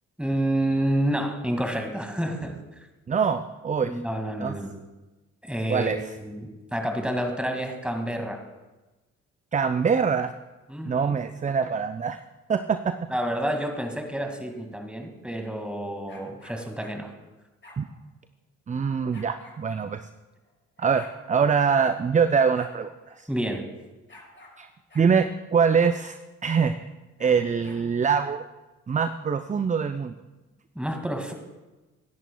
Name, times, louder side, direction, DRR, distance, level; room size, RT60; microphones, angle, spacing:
voice 1, 0.2-2.6 3.8-4.7 5.4-8.4 10.7-11.2 13.1-17.1 23.3-23.7 30.8-31.3, right 1 dB, 5° right, 3 dB, 2.1 m, -29 dB
voice 2, 3.1-4.0 4.4-4.6 5.7-6.0 9.5-10.3 10.8-12.2 12.5-13.0 17.8-17.9 18.7-20.1 20.8-23.3 24.6-24.7 24.9-26.2 26.4-26.9 27.2-28.4 28.9-30.1, right 6 dB, 20° right, 10 dB, 0.5 m, -24 dB
sound 1, 16.1-17.0 17.6-17.8 19.1-19.6 20.5-20.6 20.8-21.2 21.8-22.0 22.5-22.8 23.1-23.2 24.1-24.6 24.9-25.1 25.8-26.0 27.2-27.8, left 1 dB, 30° left, 3.4 m, -49 dB
17.0 x 10.5 x 2.3 m, 1.1 s
hypercardioid pair, 40°, 37 cm